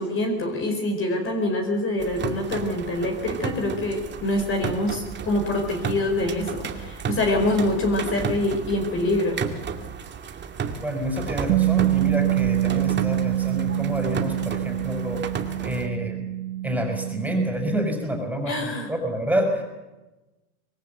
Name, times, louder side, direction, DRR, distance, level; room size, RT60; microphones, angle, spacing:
voice 1, 0.0-9.5 18.5-18.9, left 1 dB, 25° left, 4 dB, 4.6 m, -25 dB
sound 1, 2.0-15.9, right 6 dB, 25° right, 2.4 m, -33 dB
voice 2, 10.8-15.2 15.6-16.3 16.6-19.6, equal, 5° right, 4 dB, 5.9 m, -28 dB
Bass guitar, 11.5-17.7, right 14 dB, 55° right, 1.1 m, -25 dB
25.5 x 20.5 x 8.2 m, 1.1 s
hypercardioid pair, 115°, 45 cm